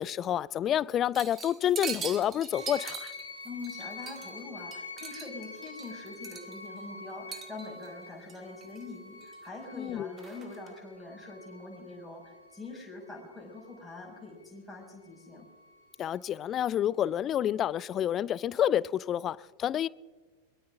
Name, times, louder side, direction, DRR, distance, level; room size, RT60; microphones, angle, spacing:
voice 1, 0.0-3.1 9.7-10.1 16.0-19.9, left 10 dB, 30° left, 0.4 m, -29 dB
sound 1, 1.1-4.4 4.7-6.8 7.3-7.9 8.3-8.8 9.2-9.7 10.2-10.7, right 6 dB, 20° right, 2.0 m, -41 dB
sound 2, 2.5-14.5 15.0-15.9, left 3 dB, 80° left, 2.0 m, -47 dB
voice 2, 3.4-15.4, left 3 dB, ahead, 6.0 m, -44 dB
23.0 x 22.5 x 2.6 m
figure-of-eight pair, 90°, 0 cm